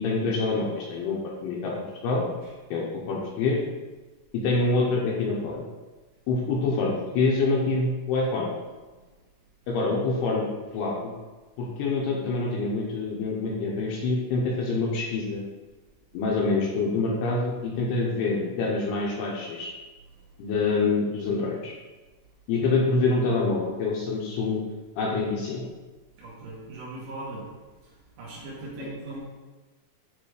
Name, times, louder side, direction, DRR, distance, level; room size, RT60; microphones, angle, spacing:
voice 1, 0.0-1.7 2.0-2.3 2.7-3.6 4.3-5.6 6.3-8.5 9.7-10.5 10.7-11.1 11.6-15.4 16.1-19.7 20.4-21.7 22.5-24.6 25.0-25.6 28.8-28.9, left 3 dB, 80° left, -3 dB, 2.6 m, -26 dB
voice 2, 26.2-27.5 27.8-29.2, right 2 dB, 65° right, -6 dB, 3.7 m, -40 dB
9.4 x 3.2 x 4.9 m, 1.3 s
omnidirectional pair, 5.4 m